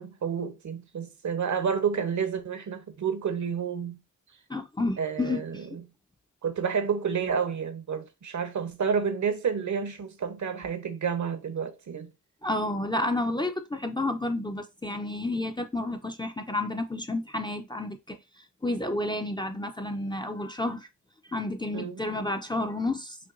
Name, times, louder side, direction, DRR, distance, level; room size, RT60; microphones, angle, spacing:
voice 1, 0.0-4.0 5.0-5.7 6.4-12.1 21.7-22.0, right 6 dB, 55° right, 0.8 m, -30 dB
voice 2, 4.5-5.8 12.4-18.2 18.6-20.9 21.3-23.2, left 2 dB, 15° left, 0.5 m, -30 dB
5.7 x 2.2 x 2.5 m
cardioid pair, 65°, 34 cm